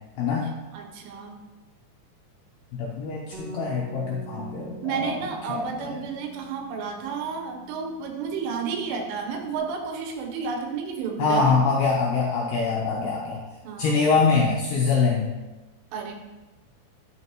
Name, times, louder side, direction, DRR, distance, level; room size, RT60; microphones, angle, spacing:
voice 1, 0.2-0.5 2.7-5.2 5.5-6.0 11.2-13.4 13.8-15.3, left 4 dB, 80° left, -3 dB, 2.4 m, -24 dB
voice 2, 0.7-1.4 4.8-11.6 13.6-14.1 15.9-16.1, right 5 dB, 80° right, 3 dB, 3.4 m, -31 dB
Bass guitar, 3.3-9.6, right 1 dB, 60° right, 2.5 m, -45 dB
11.5 x 7.6 x 3.0 m, 1.1 s
omnidirectional pair, 5.8 m